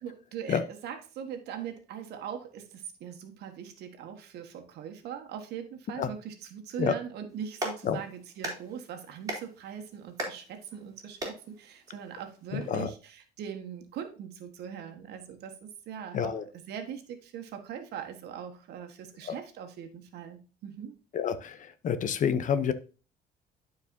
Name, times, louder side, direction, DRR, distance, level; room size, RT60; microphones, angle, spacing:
voice 1, 0.0-16.4 16.7-21.0, right 8 dB, 75° right, 5 dB, 1.5 m, -41 dB
Clapping, 7.3-12.8, right 1 dB, 20° right, 3.3 m, -41 dB
voice 2, 12.5-12.9 16.1-16.4 19.3-19.4 21.1-21.6 21.8-22.7, left 7 dB, 50° left, 13 dB, 0.8 m, -28 dB
12.0 x 4.7 x 2.7 m, 0.35 s
cardioid pair, 110°, 17 cm